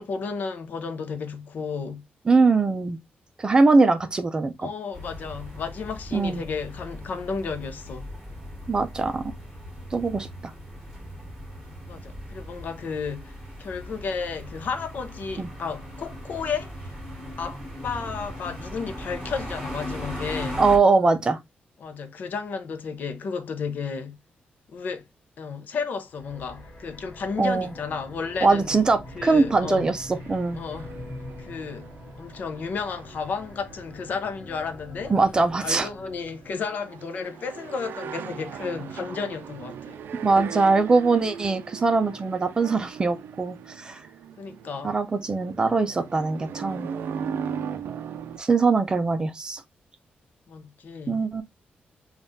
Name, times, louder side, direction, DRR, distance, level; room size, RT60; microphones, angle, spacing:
voice 1, 0.0-2.0 4.6-8.1 11.9-17.0 17.4-20.6 21.8-24.2 24.7-25.1 25.4-28.8 29.1-29.9 30.5-30.9 31.4-31.9 32.2-35.1 35.6-40.0 44.4-44.9 50.5-51.2, left 5 dB, 55° left, 0.6 m, -33 dB
voice 2, 2.3-3.0 3.4-4.7 6.1-6.4 8.7-9.3 9.9-10.5 15.4-15.5 20.6-21.4 27.4-27.7 28.4-30.6 35.1-35.9 40.2-44.0 44.8-46.9 48.4-49.6 51.1-51.4, right 3 dB, 25° right, 0.4 m, -22 dB
sound 1, 4.9-20.8, equal, 5° right, 1.6 m, -38 dB
sound 2, 26.1-36.7, left 1 dB, 30° left, 1.8 m, -44 dB
sound 3, 29.0-48.4, right 7 dB, 90° right, 0.4 m, -39 dB
5.3 x 2.4 x 2.6 m
wide cardioid pair, 175°, 3 cm